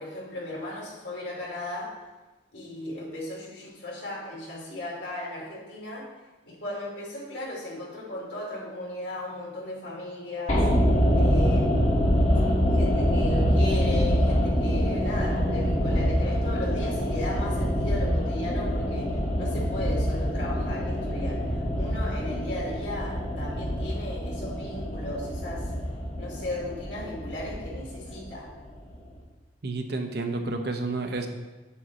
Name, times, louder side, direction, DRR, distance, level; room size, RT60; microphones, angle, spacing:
voice 1, 0.0-1.9 2.5-6.1 6.5-10.7 11.1-12.2 12.7-21.4 21.8-25.7 26.2-28.5, left 1 dB, 75° left, -4 dB, 2.6 m, -36 dB
sound 1, 10.5-28.7 28.9-29.0, equal, 40° left, 1.5 m, -25 dB
voice 2, 29.6-31.3, right 3 dB, 65° right, 5 dB, 0.8 m, -30 dB
7.3 x 6.6 x 4.0 m, 1.2 s
head